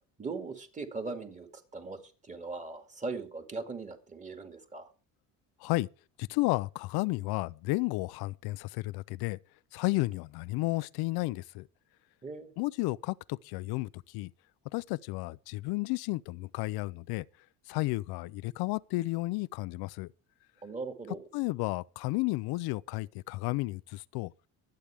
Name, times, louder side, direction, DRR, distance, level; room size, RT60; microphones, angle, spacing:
voice 1, 0.2-4.9 12.2-12.5 20.6-21.3, right 3 dB, 20° right, 2.3 m, -39 dB
voice 2, 6.2-9.4 9.7-11.7 12.6-14.3 14.7-17.2 17.7-20.1 21.3-24.3, left 21 dB, 85° left, 0.5 m, -32 dB
23.5 x 8.7 x 3.4 m
cardioid pair, 155°, 37 cm